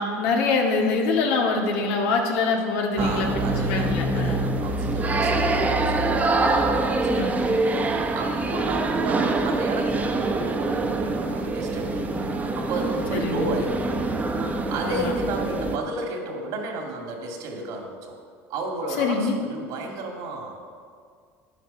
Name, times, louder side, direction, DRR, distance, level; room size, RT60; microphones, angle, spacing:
voice 1, 0.0-4.4 7.1-7.3 13.1-13.5 14.9-15.1 19.0-19.3, left 4 dB, 80° left, 1 dB, 2.0 m, -24 dB
sound 1, 3.0-15.8, right 2 dB, 25° right, 1.1 m, -25 dB
voice 2, 3.0-7.8 8.1-12.3 12.6-14.1 14.6-18.2 18.5-20.7, right 2 dB, 70° right, 2 dB, 2.5 m, -33 dB
10.5 x 9.9 x 5.8 m, 2.1 s
supercardioid pair, 110°, 7 cm